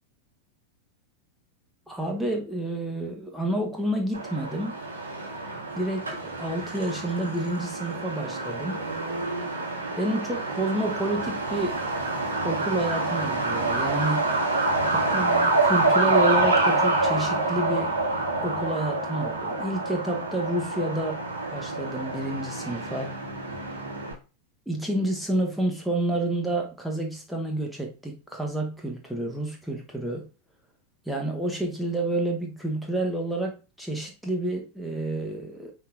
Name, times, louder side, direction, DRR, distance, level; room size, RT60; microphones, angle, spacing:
voice 1, 1.9-4.8 5.7-8.8 10.0-11.8 12.4-14.3 14.8-17.9 18.4-21.2 21.5-23.1 24.7-30.3 31.1-35.7, right 1 dB, ahead, 1.0 m, -29 dB
Truck, 4.1-24.1, right 2 dB, 75° right, 1.8 m, -27 dB
9.6 x 3.8 x 2.5 m
figure-of-eight pair, 90°, 0 cm